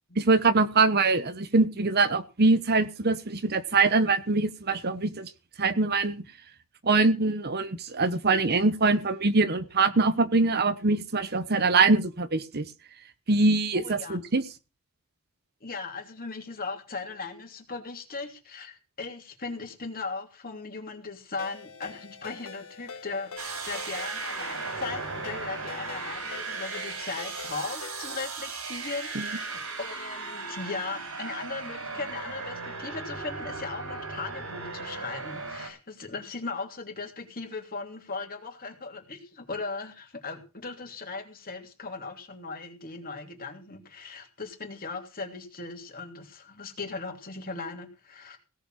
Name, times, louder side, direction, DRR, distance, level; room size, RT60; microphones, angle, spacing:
voice 1, 0.2-5.3 5.6-6.2 6.8-12.7 13.3-14.4 29.1-29.3, right 3 dB, 45° right, 12 dB, 1.0 m, -23 dB
voice 2, 13.7-14.2 15.6-48.4, left 4 dB, 40° left, 4 dB, 3.0 m, -38 dB
Ringtone, 21.4-28.3, left 5 dB, 70° left, 1.8 m, -44 dB
sound 1, 23.4-35.7, right 4 dB, 80° right, 5.2 m, -36 dB
17.5 x 6.9 x 6.3 m, 0.31 s
head